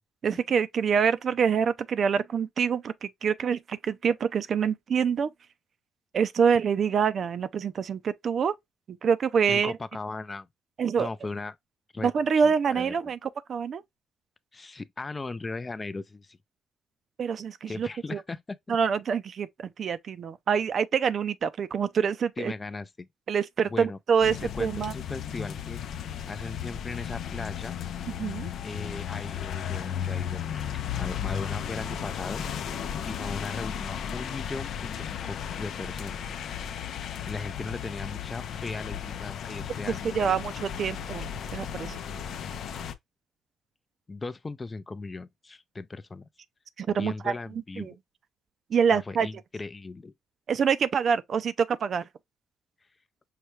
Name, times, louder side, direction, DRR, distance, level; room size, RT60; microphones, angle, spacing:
voice 1, 0.2-5.3 6.1-8.5 8.9-9.7 10.8-11.1 12.0-13.8 17.2-18.2 18.7-22.5 23.3-24.9 28.2-28.5 40.0-42.0 46.8-47.3 47.8-47.9 48.7-49.3 50.5-52.0, right 6 dB, 55° right, 0.5 m, -26 dB
voice 2, 9.5-10.5 11.0-11.6 11.9-12.9 14.5-16.4 17.7-18.8 22.4-23.1 23.7-24.0 24.5-25.8 26.3-27.8 28.6-32.4 33.0-36.2 37.3-40.4 44.1-46.3 46.9-48.0 48.9-50.1, left 3 dB, 25° left, 0.4 m, -38 dB
sound 1, 24.2-42.9, left 8 dB, 70° left, 0.6 m, -35 dB
5.7 x 2.3 x 3.1 m
cardioid pair, 90°, 0 cm